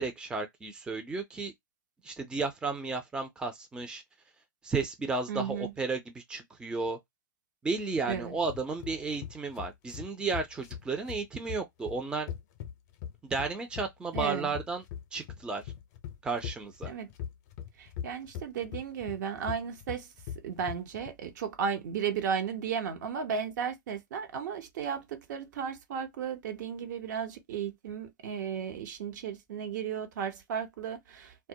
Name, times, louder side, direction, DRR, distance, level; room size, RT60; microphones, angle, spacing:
voice 1, 0.0-1.5 2.0-4.0 4.6-7.0 7.6-12.3 13.2-14.8 15.1-15.6 16.2-16.9, right 4 dB, 10° right, 0.5 m, -33 dB
voice 2, 5.3-5.7 8.0-8.3 14.1-14.5 16.9-17.1 17.8-20.1 20.4-31.5, right 7 dB, 60° right, 0.7 m, -34 dB
sound 1, 8.1-21.1, left 9 dB, 50° left, 0.6 m, -41 dB
2.2 x 2.0 x 2.7 m
hypercardioid pair, 110°, 11 cm